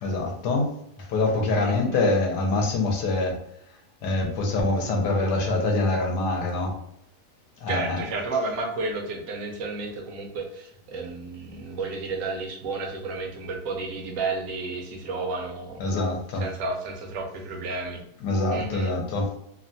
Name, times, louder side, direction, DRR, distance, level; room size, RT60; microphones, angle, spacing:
voice 1, 0.0-0.7 1.0-3.4 4.0-6.8 7.6-8.0 15.8-16.5 18.2-19.4, left 2 dB, 75° left, 1 dB, 1.2 m, -25 dB
voice 2, 1.6-2.0 7.7-15.9 16.4-18.0 18.5-18.9, right 3 dB, 65° right, 2 dB, 0.9 m, -32 dB
3.2 x 2.2 x 2.6 m, 0.76 s
omnidirectional pair, 1.8 m